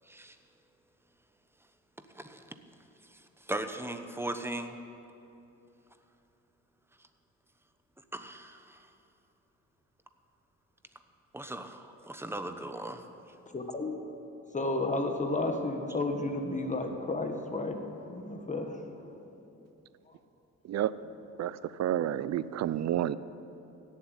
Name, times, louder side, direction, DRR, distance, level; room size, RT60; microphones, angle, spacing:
voice 1, 3.5-4.8 8.1-8.8 11.3-13.0, right 1 dB, 10° right, 8 dB, 1.0 m, -38 dB
voice 2, 13.5-13.9 14.5-19.1, left 2 dB, 25° left, 4 dB, 1.7 m, -32 dB
voice 3, 21.4-23.2, right 11 dB, 60° right, 16 dB, 0.6 m, -30 dB
16.5 x 7.6 x 9.1 m, 3.0 s
cardioid pair, 90°, 30 cm